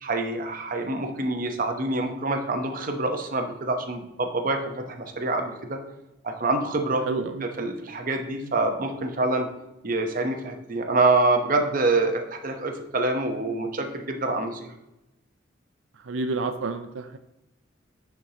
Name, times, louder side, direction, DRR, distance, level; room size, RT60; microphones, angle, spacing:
voice 1, 0.0-5.8 6.2-7.0 7.4-9.5 9.8-14.7, right 2 dB, 45° right, 4 dB, 0.9 m, -26 dB
voice 2, 7.1-7.7 16.0-17.2, right 3 dB, 85° right, 7 dB, 0.5 m, -29 dB
10.0 x 4.7 x 2.9 m, 0.92 s
head